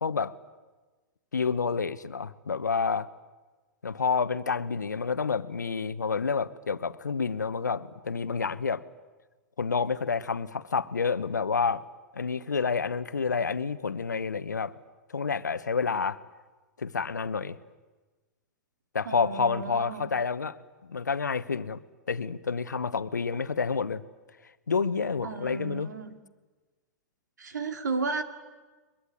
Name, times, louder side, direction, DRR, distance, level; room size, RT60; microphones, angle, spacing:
voice 1, 0.0-0.3 1.3-3.1 3.8-8.8 9.6-11.8 12.1-14.7 15.1-16.2 16.8-17.6 18.9-20.5 20.8-21.8 22.1-24.0 24.7-25.9, left 5 dB, 80° left, 14 dB, 1.1 m, -29 dB
voice 2, 19.1-20.1 25.2-26.1 27.4-28.2, right 4 dB, 75° right, 7 dB, 2.5 m, -33 dB
23.0 x 22.0 x 9.7 m, 1.3 s
figure-of-eight pair, 105°, 9 cm